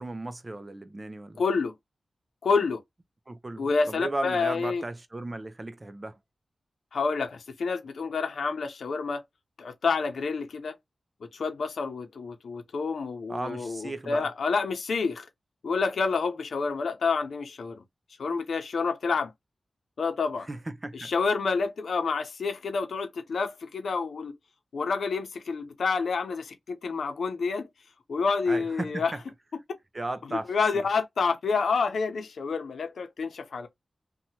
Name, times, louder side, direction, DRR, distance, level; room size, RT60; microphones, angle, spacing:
voice 1, 0.0-1.4 3.3-6.2 13.3-14.3 20.5-21.1 28.5-29.2 29.9-30.9, right 2 dB, 30° right, 0.5 m, -36 dB
voice 2, 1.4-1.7 2.4-2.8 3.6-4.8 6.9-9.2 9.6-10.7 11.2-15.3 15.6-17.8 18.2-19.3 20.0-20.5 20.9-24.3 24.7-27.7 28.1-29.1 30.3-33.7, left 4 dB, 85° left, 0.6 m, -28 dB
2.8 x 2.3 x 2.7 m
cardioid pair, 60°, 0 cm